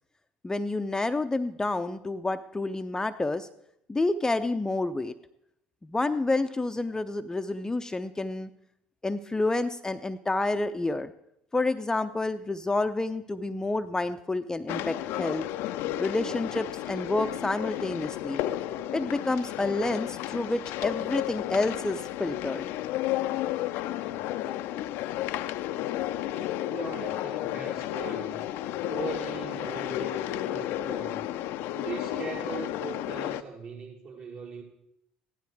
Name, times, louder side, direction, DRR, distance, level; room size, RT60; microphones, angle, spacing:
voice 1, 0.4-3.5 3.9-5.1 5.8-8.5 9.0-11.1 11.5-15.5 16.0-18.4 18.9-22.7, left 2 dB, 15° left, 9 dB, 0.6 m, -29 dB
sound 1, 14.7-33.4, left 13 dB, 65° left, 0.5 m, -32 dB
voice 2, 26.5-28.4 28.9-31.2 31.8-34.6, right 4 dB, 55° right, -3 dB, 5.6 m, -39 dB
15.5 x 12.0 x 4.8 m, 0.77 s
hypercardioid pair, 65°, 4 cm